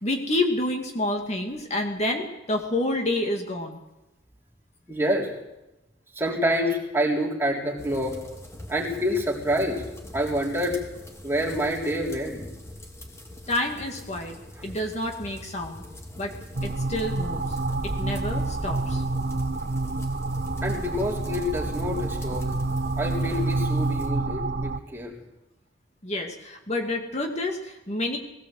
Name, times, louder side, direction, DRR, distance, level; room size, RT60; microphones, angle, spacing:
voice 1, 0.0-3.8 13.5-14.4 14.6-15.8 16.2-16.3 16.6-17.4 17.8-19.0 26.0-28.2, left 1 dB, 35° left, 3 dB, 2.2 m, -28 dB
voice 2, 4.9-5.3 6.1-8.2 8.7-9.8 10.1-10.8 11.2-12.4 14.6-14.7 20.6-22.5 23.0-25.1, equal, 15° right, -2 dB, 3.8 m, -27 dB
sound 1, 7.8-24.1, left 1 dB, 15° left, 3.1 m, -42 dB
sound 2, 16.6-24.8, right 2 dB, 55° right, 0.9 m, -28 dB
19.5 x 18.0 x 7.8 m, 0.96 s
head